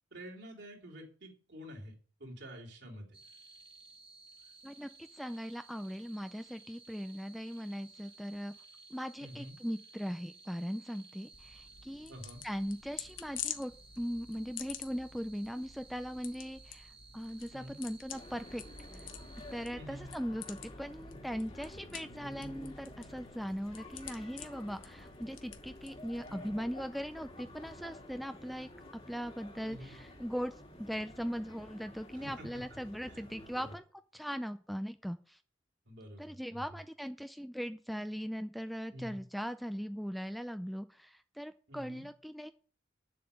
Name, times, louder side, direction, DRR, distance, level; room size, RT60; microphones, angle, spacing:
voice 1, 0.1-1.9 2.2-3.2 9.2-9.6 12.1-12.4 17.5-17.8 19.7-20.1 26.2-26.6 29.7-30.0 32.1-32.5 33.1-33.3 33.6-33.7 35.8-36.8 38.9-39.2 41.7-42.1, equal, 65° right, 0 dB, 3.6 m, -48 dB
sound 1, 3.1-19.7, right 3 dB, 30° right, 1.8 m, -57 dB
voice 2, 4.6-8.5 8.9-12.1 12.4-18.6 18.9-19.1 19.5-28.7 29.1-30.5 30.8-33.8 34.1-35.4 36.2-42.5, equal, ahead, 9 dB, 0.4 m, -39 dB
sound 2, 11.3-26.5, left 10 dB, 85° left, 1.3 m, -48 dB
sound 3, 18.1-33.8, left 1 dB, 30° left, 2.0 m, -50 dB
9.8 x 7.7 x 7.0 m, 0.41 s
head